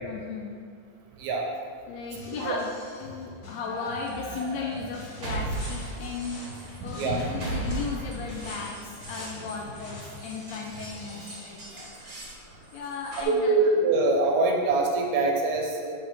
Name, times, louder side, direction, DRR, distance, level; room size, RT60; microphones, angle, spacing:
voice 1, 0.0-0.6 1.9-2.7 3.0-6.4 6.8-11.9 12.7-13.6, left 5 dB, 80° left, 0 dB, 1.6 m, -36 dB
Drum kit, 2.0-11.5, left 2 dB, 50° left, 1.3 m, -46 dB
sound 1, 3.5-13.2, right 2 dB, 50° right, 1.1 m, -38 dB
sound 2, 5.5-10.2, left 1 dB, 30° left, 1.4 m, -46 dB
voice 2, 6.8-7.2 13.3-15.9, right 3 dB, 75° right, 0 dB, 2.1 m, -24 dB
7.9 x 3.5 x 5.3 m, 2.1 s
omnidirectional pair, 3.5 m